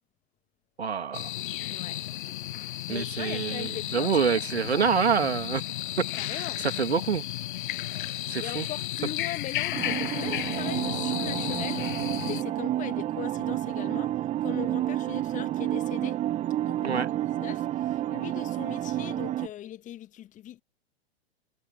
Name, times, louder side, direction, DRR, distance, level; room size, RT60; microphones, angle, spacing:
voice 1, 0.8-1.3 2.9-5.6 6.0-7.2 8.3-8.7 16.8-17.1, right 6 dB, 75° right, 2.8 m, -27 dB
sound 1, 1.1-12.4, left 14 dB, 50° left, 0.7 m, -33 dB
voice 2, 2.8-4.9 6.2-6.6 8.4-11.9 12.2-14.1 14.4-16.2 16.6-17.7 18.1-20.6, left 12 dB, 25° left, 1.7 m, -40 dB
sound 2, 9.7-19.5, right 13 dB, 20° right, 1.0 m, -30 dB
figure-of-eight pair, 105°, 32 cm